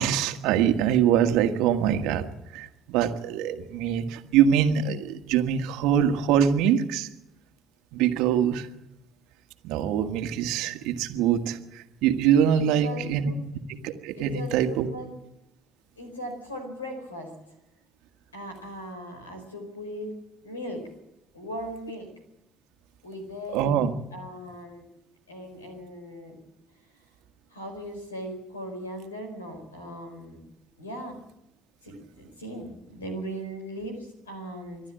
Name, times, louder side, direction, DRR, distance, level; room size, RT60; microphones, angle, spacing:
voice 1, 0.0-2.2 2.5-7.1 7.9-8.7 9.6-13.3 13.8-14.9 23.5-23.9, right 9 dB, 70° right, 6 dB, 1.5 m, -24 dB
voice 2, 12.5-13.4 14.2-15.1 16.0-17.3 18.3-20.1 20.4-20.9 21.3-22.1 23.0-23.8 24.1-24.8 25.3-26.4 27.5-30.4 30.8-31.2 31.8-34.8, equal, 90° left, 5 dB, 4.7 m, -38 dB
26.0 x 12.0 x 8.9 m, 0.87 s
figure-of-eight pair, 50°, 0 cm